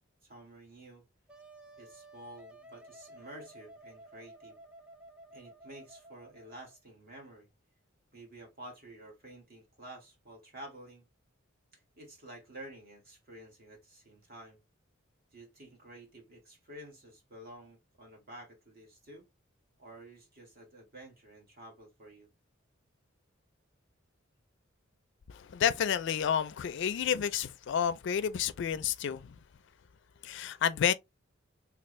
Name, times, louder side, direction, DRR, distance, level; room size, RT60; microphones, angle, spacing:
voice 1, 0.2-1.0 1.8-4.6 5.3-7.5 8.1-11.0 11.7-14.6 15.3-19.3 19.8-22.3, right 1 dB, 50° right, 1.6 m, -51 dB
Wind instrument woodwind instrument, 1.3-6.8, right 1 dB, 5° right, 0.5 m, -54 dB
voice 2, 25.3-29.4 30.2-30.9, left 8 dB, 60° left, 0.4 m, -30 dB
3.4 x 2.4 x 3.0 m
head